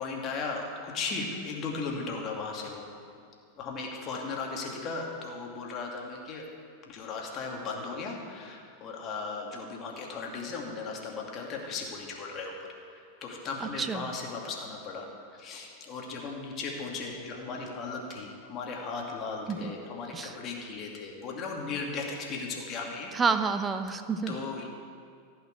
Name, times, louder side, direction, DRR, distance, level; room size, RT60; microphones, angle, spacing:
voice 1, 0.0-2.8 3.6-6.4 6.9-12.5 12.9-15.0 15.3-23.1 24.3-24.7, left 4 dB, 30° left, -1 dB, 2.5 m, -36 dB
voice 2, 13.6-14.1 19.5-19.7 20.1-20.3 23.1-24.4, right 5 dB, 20° right, 9 dB, 0.8 m, -29 dB
16.0 x 5.9 x 9.7 m, 2.3 s
figure-of-eight pair, 90°, 0 cm